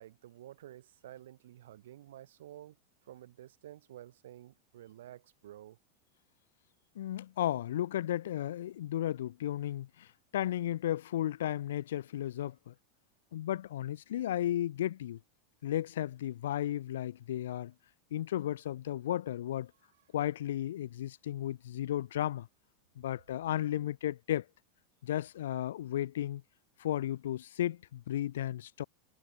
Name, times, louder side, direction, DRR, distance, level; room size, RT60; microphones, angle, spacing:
voice 1, 0.0-2.8 3.0-5.8, right 13 dB, 85° right, 0.7 m, -51 dB
voice 2, 7.0-10.1 10.3-12.7 13.3-15.2 15.6-17.7 18.1-19.7 20.1-22.5 23.0-24.4 25.0-26.4 26.8-28.8, left 12 dB, 90° left, 0.5 m, -34 dB
supercardioid pair, 145°, 0 cm